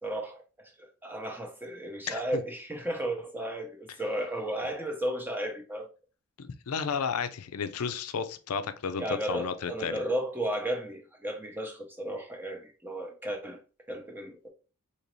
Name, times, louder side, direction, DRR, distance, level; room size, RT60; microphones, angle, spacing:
voice 1, 0.0-5.9 9.0-13.6 13.9-14.5, right 1 dB, 10° right, 0.6 m, -34 dB
voice 2, 2.1-2.4 6.4-10.0, left 6 dB, 75° left, 0.5 m, -33 dB
4.0 x 2.9 x 3.0 m
head